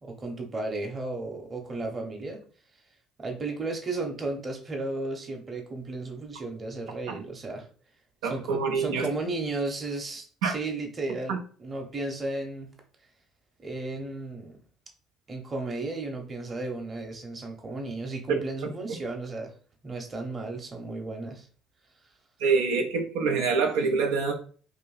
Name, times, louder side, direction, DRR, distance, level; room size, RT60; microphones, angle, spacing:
voice 1, 0.0-2.4 3.2-7.7 8.2-12.7 13.6-14.6 15.3-19.5 19.8-21.5, right 2 dB, 30° right, 2 dB, 1.0 m, -34 dB
voice 2, 8.2-9.1 10.4-10.5 11.3-11.4 18.3-18.7 22.4-24.3, right 5 dB, 75° right, 2 dB, 0.7 m, -26 dB
2.9 x 2.6 x 4.2 m, 0.43 s
hypercardioid pair, 60°, 0 cm